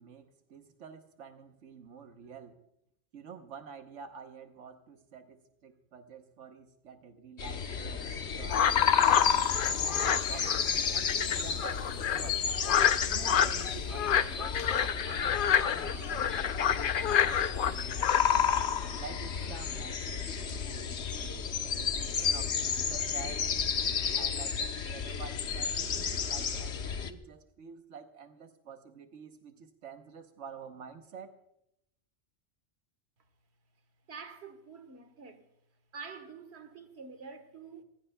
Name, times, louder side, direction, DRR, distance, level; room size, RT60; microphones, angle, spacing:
voice 1, 0.0-2.6 3.1-12.4 13.0-18.1 19.0-21.5 21.8-23.5 24.1-31.4, right 6 dB, 90° right, 1.3 m, -49 dB
sound 1, 7.4-27.1, left 7 dB, 70° left, 1.3 m, -31 dB
sound 2, 8.5-18.2, left 8 dB, 55° left, 0.7 m, -29 dB
voice 2, 34.1-35.5 35.9-37.8, right 5 dB, 65° right, 1.6 m, -47 dB
28.5 x 15.5 x 2.3 m
omnidirectional pair, 1.2 m